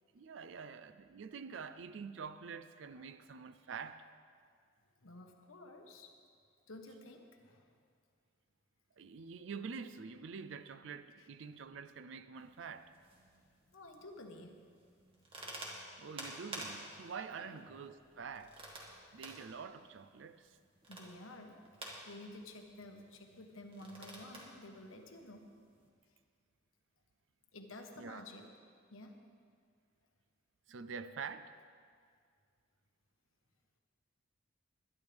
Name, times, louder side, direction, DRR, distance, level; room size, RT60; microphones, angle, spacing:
voice 1, 0.1-4.1 9.0-12.9 16.0-18.6 19.1-20.6 28.0-28.2 30.7-31.5, right 5 dB, 65° right, 12 dB, 0.4 m, -46 dB
voice 2, 2.9-3.2 5.0-6.1 6.7-7.7 11.2-11.3 13.7-14.6 17.4-17.6 18.9-19.3 20.9-21.6 22.0-25.5 27.5-28.5 28.9-29.2, left 1 dB, 90° left, 3 dB, 1.4 m, -52 dB
sound 1, 12.3-25.9, right 1 dB, 25° right, 2.0 m, -52 dB
21.0 x 11.0 x 3.5 m, 2.1 s
head